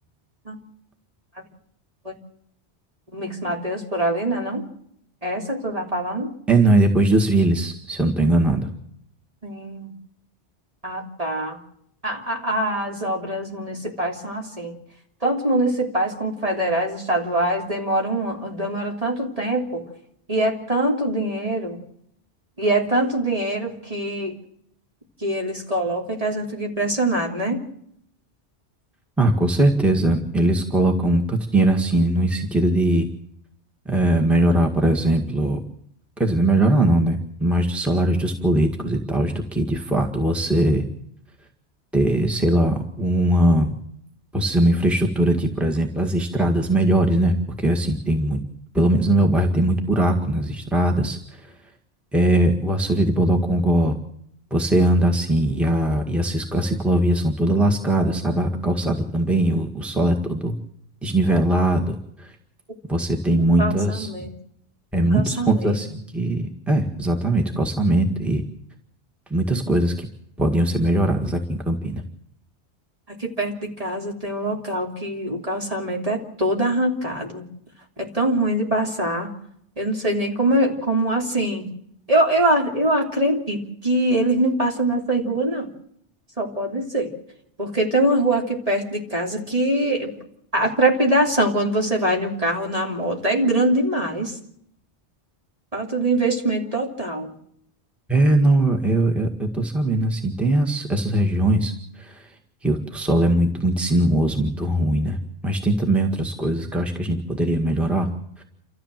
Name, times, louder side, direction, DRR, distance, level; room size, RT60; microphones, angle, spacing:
voice 1, 3.1-4.7 5.2-6.3 9.4-9.9 10.8-11.6 12.0-14.7 15.2-19.8 20.3-21.8 22.6-24.3 25.2-27.6 63.6-64.3 65.1-65.8 73.1-77.4 78.0-79.3 79.8-81.6 82.1-85.7 86.4-87.1 87.6-90.1 90.5-94.4 95.7-97.3, right 1 dB, 30° right, 0 dB, 3.2 m, -23 dB
voice 2, 6.5-8.7 29.2-33.1 33.9-35.6 36.2-40.8 41.9-43.7 44.3-48.4 48.7-51.5 52.1-54.0 54.5-60.5 61.0-62.3 62.9-64.1 64.9-68.4 69.3-70.1 70.4-72.0 98.1-102.3 102.6-105.2 105.4-108.1 108.4-108.5, right 1 dB, ahead, 2 dB, 1.9 m, -20 dB
29.0 x 14.0 x 7.6 m, 0.72 s
omnidirectional pair, 1.2 m